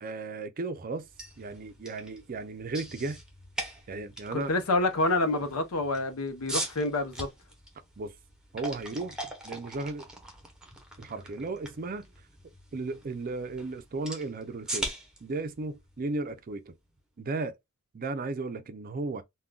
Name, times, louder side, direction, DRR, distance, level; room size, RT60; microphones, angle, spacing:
voice 1, 0.0-1.1 1.4-3.2 3.9-4.6 8.0-8.1 8.5-9.2 9.4-10.1 11.0-12.1 12.7-14.9 15.2-16.7 17.2-17.5 17.9-19.2, right 3 dB, 40° right, 0.4 m, -35 dB
sound 1, 1.0-16.9, right 1 dB, 5° right, 0.7 m, -42 dB
voice 2, 4.3-7.3, left 2 dB, 80° left, 0.7 m, -27 dB
3.6 x 2.2 x 2.2 m
head